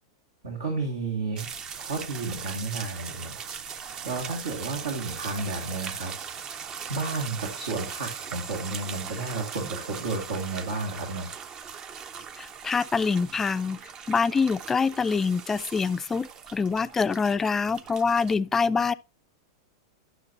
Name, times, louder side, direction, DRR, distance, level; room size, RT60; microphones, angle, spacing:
voice 1, 0.4-1.5 1.8-3.4 3.7-6.1 6.9-11.3, right 3 dB, 85° right, 2.2 m, -32 dB
sound 1, 1.4-18.4, right 7 dB, 30° right, 0.6 m, -39 dB
voice 2, 12.4-13.8 14.1-18.9, left 5 dB, 15° left, 0.4 m, -25 dB
12.5 x 6.0 x 2.7 m
hypercardioid pair, 115°, 2 cm